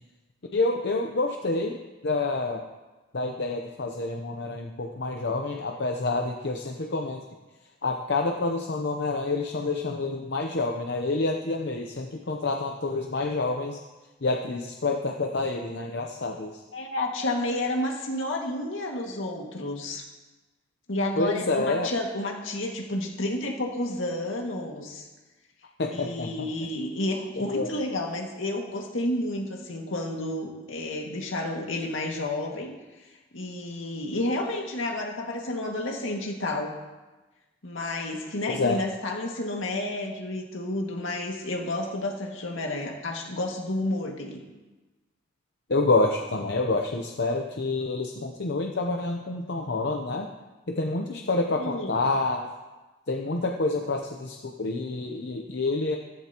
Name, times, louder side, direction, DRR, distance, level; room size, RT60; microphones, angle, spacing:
voice 1, 0.5-1.8 2.0-2.6 3.1-7.2 7.8-13.8 14.2-16.5 21.2-21.9 25.8-26.5 27.4-27.7 38.5-38.8 45.7-50.3 50.7-52.5 53.1-56.0, left 3 dB, 60° left, 2 dB, 0.8 m, -28 dB
voice 2, 16.7-20.1 20.9-25.1 25.9-32.7 33.3-36.7 37.6-44.4 51.6-52.0, left 1 dB, 75° left, 0 dB, 2.1 m, -31 dB
15.0 x 14.5 x 3.0 m, 1.2 s
head